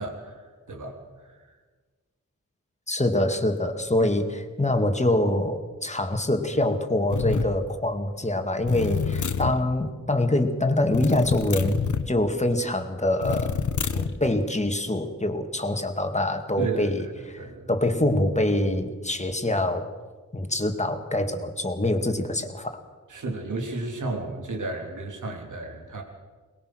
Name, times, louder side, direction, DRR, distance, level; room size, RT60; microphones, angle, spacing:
voice 1, 0.0-1.6 4.0-4.1 16.6-17.7 23.1-26.0, right 2 dB, 85° right, 2 dB, 3.1 m, -33 dB
voice 2, 2.9-11.8 12.1-13.6 13.9-19.9 20.3-22.8, left 1 dB, 25° left, 6 dB, 2.1 m, -25 dB
sound 1, 7.1-7.5 8.7-9.6 10.9-12.1 13.2-14.2, left 6 dB, 75° left, 1.2 m, -27 dB
23.0 x 20.0 x 6.3 m, 1.4 s
wide cardioid pair, 75°, 30 cm